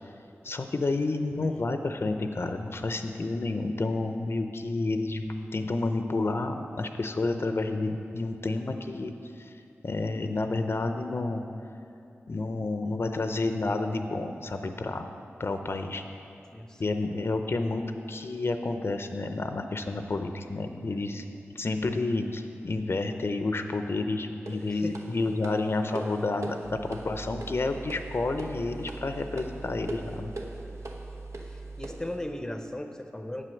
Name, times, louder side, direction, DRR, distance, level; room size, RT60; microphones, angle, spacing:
voice 1, 0.4-9.5 9.8-11.5 12.3-15.1 15.4-16.0 16.8-21.2 21.6-30.3, left 2 dB, 55° left, 7 dB, 0.6 m, -30 dB
voice 2, 16.5-17.0 20.9-21.1 24.6-25.0 31.5-33.5, left 1 dB, 10° left, 6 dB, 0.6 m, -38 dB
sound 1, 24.5-32.1, right 2 dB, 85° right, 0.9 m, -42 dB
sound 2, 26.6-31.9, right 3 dB, 60° right, 1.3 m, -42 dB
8.4 x 7.6 x 6.4 m, 2.6 s
wide cardioid pair, 75°, 5 cm